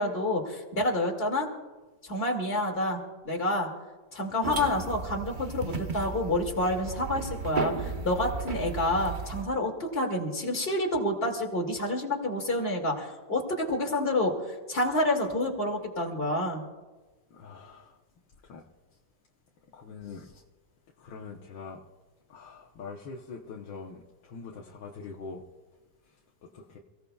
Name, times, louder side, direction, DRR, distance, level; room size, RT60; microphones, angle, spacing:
voice 1, 0.0-1.5 2.0-3.7 4.1-16.6, left 1 dB, 30° left, 2.6 m, -28 dB
sound 1, 4.4-9.4, right 3 dB, 35° right, 0.9 m, -35 dB
voice 2, 17.3-18.0 18.4-18.6 19.7-20.4 21.0-21.8 22.3-25.4 26.4-26.8, left 4 dB, 80° left, 1.8 m, -43 dB
28.0 x 17.0 x 2.3 m
omnidirectional pair, 2.0 m